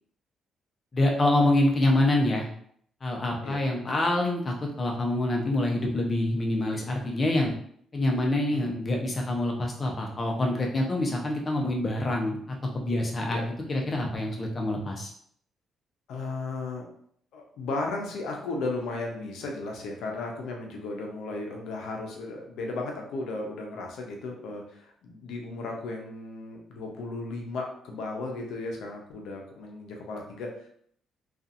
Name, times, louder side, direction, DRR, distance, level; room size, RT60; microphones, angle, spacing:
voice 1, 0.9-2.5 3.0-7.5 7.9-15.1, left 1 dB, 35° left, 0 dB, 0.6 m, -26 dB
voice 2, 16.1-16.9 17.3-30.7, left 2 dB, 80° left, 1 dB, 0.6 m, -35 dB
2.6 x 2.4 x 2.5 m, 0.64 s
cardioid pair, 90°, 0 cm